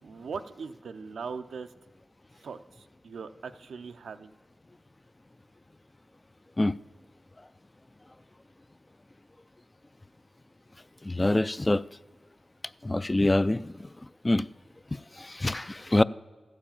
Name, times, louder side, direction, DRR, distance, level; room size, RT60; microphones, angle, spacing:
voice 1, 0.0-1.7 2.4-4.3, right 5 dB, 85° right, 0.5 m, -40 dB
voice 2, 11.0-11.8 12.8-13.9 14.2-14.4 15.2-16.0, left 1 dB, 25° left, 0.3 m, -25 dB
14.5 x 4.9 x 8.8 m
cardioid pair, 45°, 0 cm